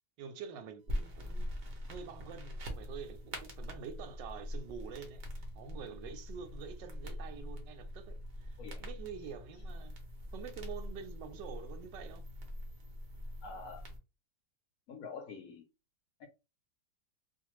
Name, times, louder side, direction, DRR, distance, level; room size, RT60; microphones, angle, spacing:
voice 1, 0.2-5.2 5.5-9.9 10.3-12.2, right 7 dB, 90° right, 1.2 m, -47 dB
sound 1, 0.9-14.0, equal, 55° right, 0.6 m, -43 dB
voice 2, 13.4-13.9 14.9-15.7 16.2-16.3, left 5 dB, 70° left, 0.9 m, -46 dB
2.5 x 2.5 x 3.0 m
omnidirectional pair, 1.9 m